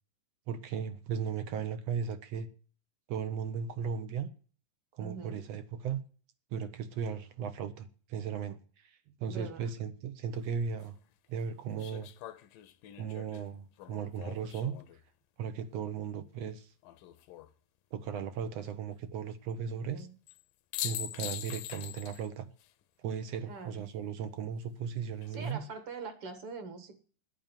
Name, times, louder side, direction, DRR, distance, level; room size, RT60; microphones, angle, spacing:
voice 1, 0.5-2.5 3.1-4.3 4.9-6.0 6.5-10.9 11.3-12.1 13.0-14.8 15.4-16.7 17.9-20.1 20.8-22.5 23.0-25.6, right 7 dB, 70° right, 1.7 m, -36 dB
voice 2, 5.0-5.4 9.3-9.7 19.9-20.1 23.4-23.8 25.3-27.0, right 4 dB, 50° right, 2.1 m, -43 dB
sound 1, 10.3-10.4 11.8-15.0 16.8-17.5 20.3-20.4 20.7-22.3 22.6-22.7 25.0-25.5, left 13 dB, 80° left, 2.5 m, -42 dB
10.5 x 9.2 x 9.0 m
omnidirectional pair, 3.9 m